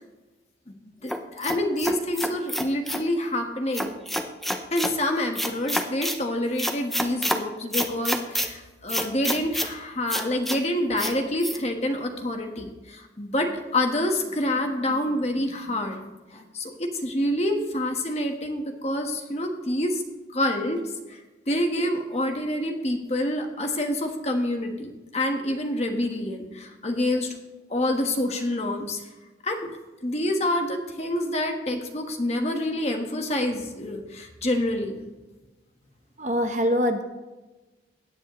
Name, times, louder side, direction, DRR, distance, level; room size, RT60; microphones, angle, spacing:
voice 1, 1.0-3.9 4.7-16.0 16.3-20.0 20.3-21.2 21.5-27.3 27.7-29.0 29.4-29.7 30.0-35.0, left 1 dB, 35° left, 3 dB, 1.3 m, -27 dB
sound 1, 1.1-3.1 3.7-4.9 5.4-6.2 6.6-7.4 7.7-8.5 8.9-9.7 10.1-10.6 11.0-11.1 11.4-11.6, equal, ahead, 0.6 m, -28 dB
voice 2, 36.2-37.0, equal, 40° right, 6 dB, 1.0 m, -23 dB
16.5 x 9.7 x 3.1 m, 1.1 s
head